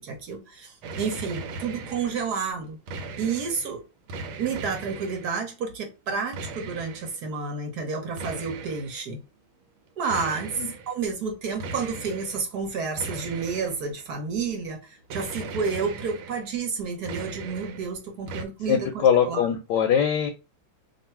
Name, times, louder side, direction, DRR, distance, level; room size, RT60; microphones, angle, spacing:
voice 1, 0.0-2.8 3.2-3.8 4.4-9.2 10.0-10.5 10.9-14.8 15.1-19.5, right 5 dB, 60° right, 3 dB, 1.2 m, -30 dB
sound 1, 0.8-2.3 2.6-3.7 4.1-5.4 6.3-7.2 8.2-9.0 10.1-10.9 11.6-12.5 13.0-14.1 15.1-16.5 16.8-17.9 18.3-18.4, right 3 dB, 85° right, 1.4 m, -38 dB
voice 2, 18.7-20.3, left 8 dB, 70° left, 6 dB, 1.0 m, -22 dB
3.0 x 2.6 x 4.3 m, 0.29 s
omnidirectional pair, 2.2 m